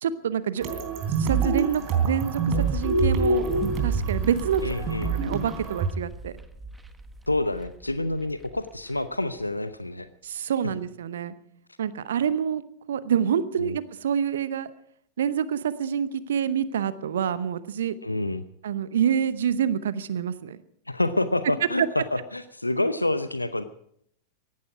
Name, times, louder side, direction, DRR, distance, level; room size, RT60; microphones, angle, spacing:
voice 1, 0.0-0.6 1.2-2.4 2.7-3.5 3.8-4.6 5.1-6.4 10.2-11.3 11.8-12.6 12.9-14.7 15.2-17.9 18.6-20.6, right 8 dB, 65° right, 16 dB, 0.8 m, -27 dB
sound 1, 0.6-5.9, right 4 dB, 35° right, 3.5 m, -26 dB
sound 2, 2.6-9.1 9.4-9.5, right 2 dB, 10° right, 1.3 m, -37 dB
voice 2, 4.6-5.1 7.3-10.1 13.6-13.8 18.0-18.4 20.9-23.6, left 2 dB, 85° left, 13 dB, 0.7 m, -27 dB
17.5 x 15.0 x 4.8 m, 0.67 s
figure-of-eight pair, 90°, 0 cm